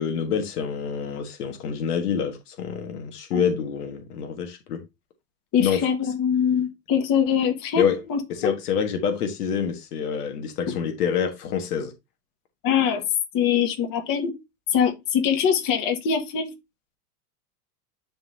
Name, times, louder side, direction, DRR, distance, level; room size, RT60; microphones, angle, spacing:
voice 1, 0.0-4.8 5.6-5.9 7.8-8.0 8.3-11.9, left 7 dB, 85° left, 1.5 m, -26 dB
voice 2, 5.5-7.8 8.1-8.5 10.7-10.8 12.6-13.0 13.3-14.3 14.7-16.5, left 7 dB, 50° left, 1.9 m, -23 dB
10.5 x 3.8 x 2.8 m
supercardioid pair, 110°, 44 cm